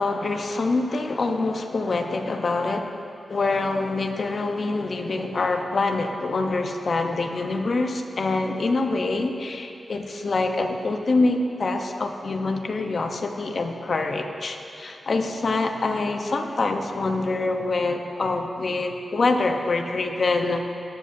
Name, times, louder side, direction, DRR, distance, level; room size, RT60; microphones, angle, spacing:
voice 1, 0.0-2.9 3.3-20.6, left 3 dB, 60° left, 5 dB, 1.0 m, -25 dB
18.5 x 9.8 x 2.8 m, 2.6 s
cardioid pair, 45°, 0 cm